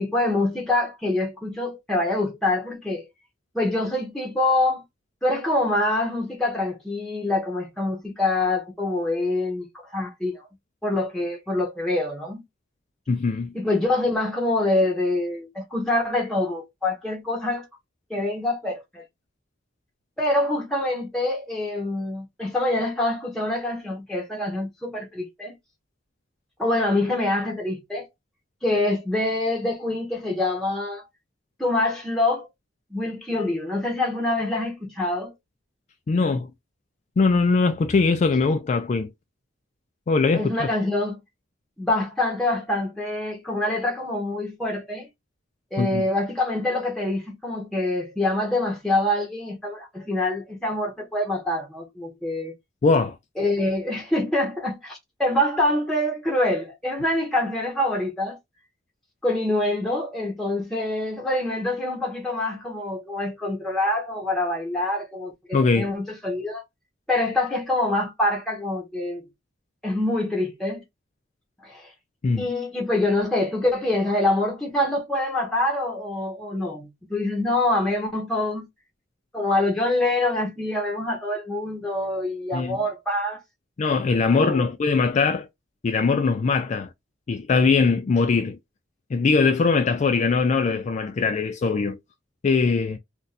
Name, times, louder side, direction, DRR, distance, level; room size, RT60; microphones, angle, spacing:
voice 1, 0.0-3.1 3.5-4.8 5.2-9.7 9.9-10.5 10.8-12.4 13.5-17.7 18.1-19.0 20.2-25.6 26.6-28.1 28.6-31.0 31.6-32.5 32.9-35.3 40.3-41.2 41.8-45.1 45.7-52.5 53.4-58.4 59.2-66.6 67.1-69.2 69.8-70.8 71.6-71.9 72.4-78.7 79.3-83.4 84.3-84.6, left 2 dB, 5° left, 0.8 m, -25 dB
voice 2, 13.1-13.5 36.1-36.5 37.2-39.1 40.1-40.7 45.8-46.0 52.8-53.2 65.5-65.9 72.2-72.5 82.5-82.8 83.8-85.5 85.8-86.9 87.3-88.6 89.1-92.0 92.4-93.0, left 4 dB, 40° left, 0.3 m, -21 dB
2.5 x 2.2 x 4.0 m
head